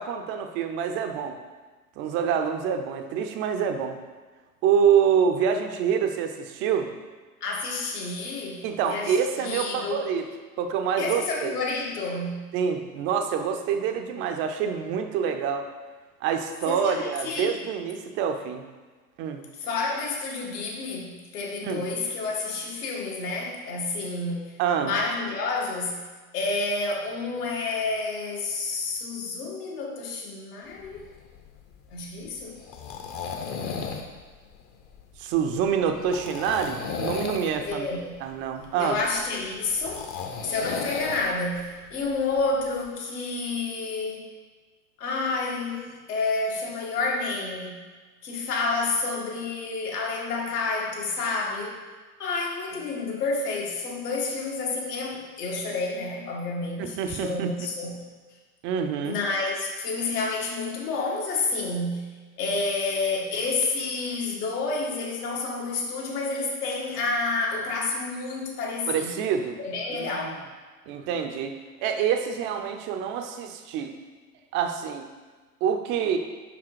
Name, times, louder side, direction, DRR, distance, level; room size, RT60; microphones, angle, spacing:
voice 1, 0.0-1.4 2.0-4.0 4.6-6.9 8.6-10.2 10.6-11.5 12.5-15.7 16.2-18.7 19.2-19.4 21.6-21.9 24.6-24.9 35.2-37.9 38.2-39.0 56.8-57.5 58.6-59.2 68.9-69.6 70.0-70.3 70.9-73.9 74.5-75.1 75.6-76.2, right 7 dB, 25° right, 6 dB, 0.4 m, -26 dB
voice 2, 7.4-10.1 11.0-12.5 16.6-17.5 19.6-26.1 26.3-31.1 31.9-32.6 37.6-38.0 38.8-40.1 40.4-44.3 45.0-47.8 48.2-51.8 52.2-58.0 59.0-69.3 69.6-70.4, left 3 dB, 70° left, -2 dB, 1.6 m, -29 dB
sound 1, 30.7-42.9, left 5 dB, 30° left, 0.7 m, -36 dB
5.3 x 5.1 x 4.6 m, 1.3 s
hypercardioid pair, 100°, 49 cm